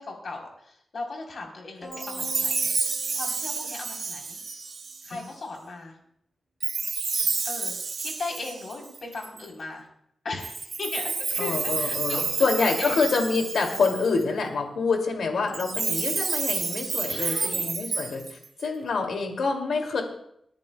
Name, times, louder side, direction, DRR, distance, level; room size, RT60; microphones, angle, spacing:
voice 1, 0.0-2.7 3.1-4.4 5.0-6.0 7.4-9.9 10.2-13.0 17.1-17.7, left 3 dB, 60° left, 0 dB, 3.6 m, -37 dB
sound 1, 1.8-4.4, equal, 5° left, 3.6 m, -45 dB
Chime, 1.9-5.3 6.6-9.5 10.4-14.2 15.5-18.6, right 4 dB, 60° right, 1.5 m, -30 dB
voice 2, 11.4-20.0, left 4 dB, 85° left, 2 dB, 2.4 m, -26 dB
28.5 x 10.5 x 2.2 m, 0.72 s
wide cardioid pair, 110°, 0 cm